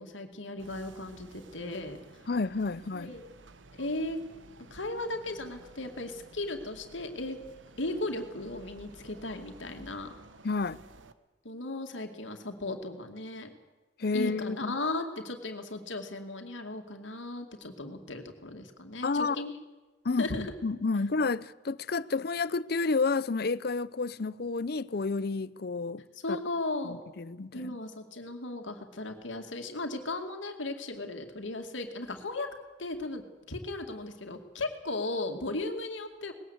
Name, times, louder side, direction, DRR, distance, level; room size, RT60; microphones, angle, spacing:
voice 1, 0.0-2.3 2.9-3.3 3.7-4.2 4.7-7.4 7.8-10.1 11.4-13.5 14.1-19.5 20.2-20.5 26.1-27.0 27.5-32.5 32.8-33.2 33.5-36.3, left 2 dB, 85° left, 2.4 m, -36 dB
sound 1, 0.6-11.1, right 2 dB, 80° right, 1.2 m, -54 dB
voice 2, 2.3-3.1 10.4-10.8 14.0-14.8 19.0-19.4 20.0-26.0 26.3-26.4 27.2-27.7, left 4 dB, 55° left, 0.6 m, -30 dB
20.5 x 17.5 x 8.1 m
head